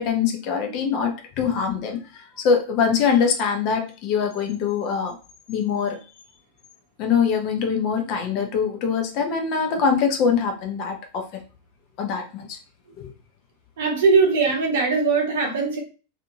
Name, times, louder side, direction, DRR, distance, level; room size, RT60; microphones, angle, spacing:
voice 1, 0.0-5.1 5.5-6.0 7.0-11.3 12.0-12.6 13.0-13.1, left 6 dB, 40° left, 3 dB, 0.7 m, -23 dB
voice 2, 13.8-15.8, right 4 dB, 55° right, 1 dB, 0.9 m, -20 dB
2.7 x 2.5 x 2.7 m, 0.34 s
figure-of-eight pair, 90°, 0 cm